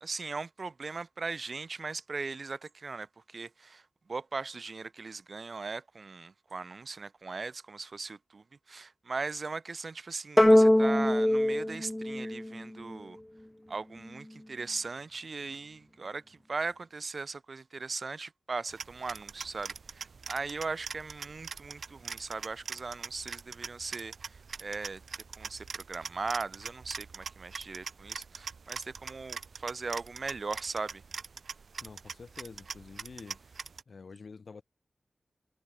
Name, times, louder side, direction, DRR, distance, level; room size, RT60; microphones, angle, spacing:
voice 1, 0.0-3.8 4.1-13.2 13.7-25.0 25.4-31.0, right 4 dB, 55° right, 1.8 m, -39 dB
sound 1, 10.4-13.0, left 1 dB, 10° left, 0.5 m, -23 dB
sound 2, 18.7-33.8, right 5 dB, 75° right, 6.0 m, -43 dB
voice 2, 31.8-33.6 33.9-34.6, left 4 dB, 65° left, 7.1 m, -48 dB
wide cardioid pair, 85°, 0 cm